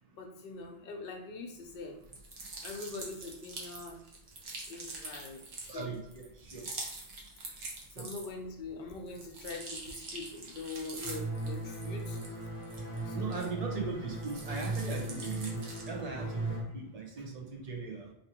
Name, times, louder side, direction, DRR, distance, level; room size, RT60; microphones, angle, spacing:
voice 1, 0.1-2.0 2.6-4.0 4.7-6.0 7.6-12.2 12.9-13.4, left 3 dB, 65° left, 3 dB, 0.8 m, -43 dB
sound 1, 2.0-8.5 8.9-13.8 14.1-16.0, right 2 dB, 80° right, 1.0 m, -45 dB
voice 2, 5.7-6.7 8.0-8.1 13.1-18.1, right 4 dB, 45° right, 0 dB, 0.6 m, -39 dB
sound 2, 11.0-16.6, right 2 dB, 15° left, 0.9 m, -37 dB
2.7 x 2.6 x 2.9 m, 0.79 s
omnidirectional pair, 1.0 m